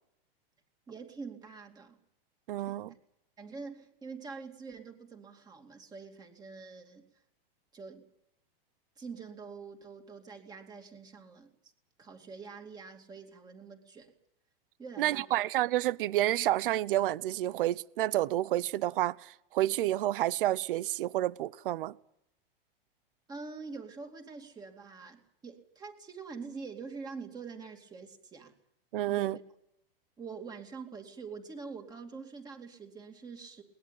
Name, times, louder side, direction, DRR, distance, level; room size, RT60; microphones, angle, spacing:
voice 1, 0.9-2.0 2.7-3.0 3.4-7.1 7.7-8.0 9.0-11.5 12.0-14.1 14.8-15.3 23.3-28.5 29.0-29.4 30.2-33.6, right 4 dB, 15° right, 2.6 m, -45 dB
voice 2, 2.5-2.9 15.0-21.9 28.9-29.4, right 14 dB, 65° right, 0.8 m, -29 dB
21.5 x 20.0 x 8.8 m
supercardioid pair, 165°, 29 cm